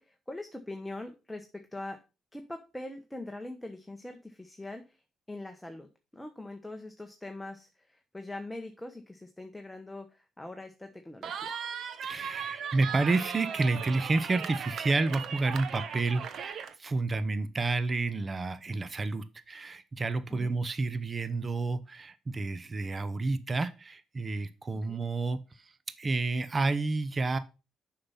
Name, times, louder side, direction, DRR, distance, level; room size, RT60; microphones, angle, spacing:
voice 1, 0.0-2.0 2.3-5.0 5.3-11.6 20.3-20.6 24.9-25.0, left 2 dB, 10° left, 5 dB, 1.2 m, -42 dB
Cheering, 11.2-16.7, right 7 dB, 65° right, 0.9 m, -37 dB
voice 2, 12.0-25.4 26.0-27.4, right 3 dB, 30° right, 13 dB, 0.9 m, -30 dB
6.7 x 5.8 x 5.6 m, 0.30 s
cardioid pair, 90°, 0 cm